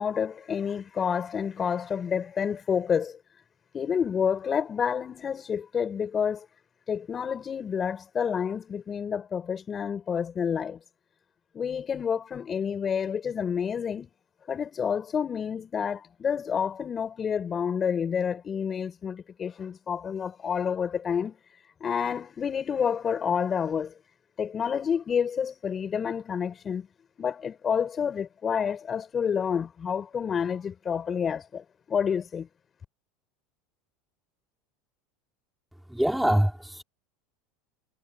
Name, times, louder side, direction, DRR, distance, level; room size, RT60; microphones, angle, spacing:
voice 1, 0.0-3.2 3.7-6.5 6.9-10.8 11.5-14.1 14.5-21.4 21.8-23.9 24.4-26.9 27.2-32.5, left 7 dB, 30° left, 7.3 m, -29 dB
voice 2, 35.9-36.8, equal, ahead, 4.0 m, -24 dB
supercardioid pair, 110°, 0 cm